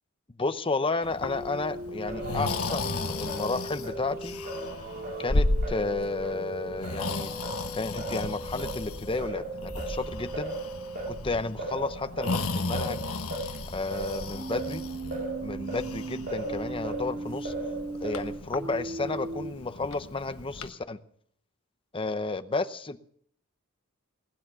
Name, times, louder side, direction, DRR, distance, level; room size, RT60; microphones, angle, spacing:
voice 1, 0.4-4.4 5.2-7.3 7.7-10.6 11.1-13.0 13.7-14.9 15.4-17.5 18.0-21.0 21.9-23.0, left 3 dB, 25° left, 12 dB, 0.7 m, -32 dB
Breathing, 1.0-20.7, left 2 dB, 70° left, 1.3 m, -35 dB
sound 1, 1.2-11.0 14.3-19.5, right 2 dB, 25° right, 1.4 m, -39 dB
Singing, 2.1-6.4 6.8-17.1 17.5-18.5, right 2 dB, 45° right, 3.3 m, -38 dB
20.0 x 10.0 x 6.8 m, 0.62 s
head